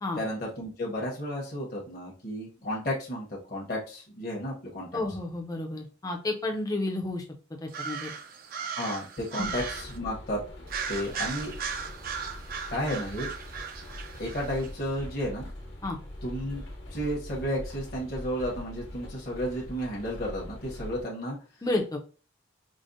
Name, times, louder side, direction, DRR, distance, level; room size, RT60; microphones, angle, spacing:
voice 1, 0.2-4.9 8.7-10.4 10.9-11.5 12.7-13.3 14.2-15.5 16.2-16.6 16.9-21.4, equal, 45° left, -4 dB, 0.9 m, -32 dB
voice 2, 4.9-7.2 7.6-8.1 9.4-9.5 15.8-16.0 21.6-22.0, left 2 dB, 15° left, 2 dB, 0.5 m, -31 dB
sound 1, 7.7-10.0 10.7-14.7, right 6 dB, 45° right, 0.4 m, -37 dB
sound 2, 9.4-21.0, left 1 dB, 65° left, 1.2 m, -42 dB
5.0 x 2.1 x 2.5 m, 0.36 s
head